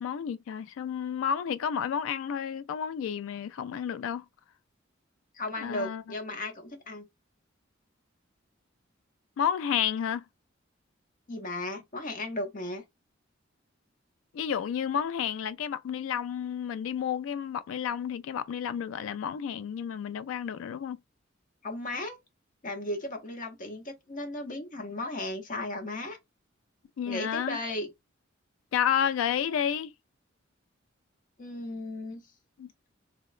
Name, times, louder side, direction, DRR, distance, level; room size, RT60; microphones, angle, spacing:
voice 1, 0.0-4.2 5.6-6.0 9.4-10.2 14.3-21.0 27.0-27.6 28.7-29.9 32.6-32.7, left 8 dB, 90° left, 0.3 m, -31 dB
voice 2, 5.3-7.1 11.3-12.8 21.6-22.1 22.6-26.2 27.1-27.9 31.4-32.2, left 1 dB, 45° left, 0.7 m, -35 dB
2.8 x 2.0 x 2.4 m
head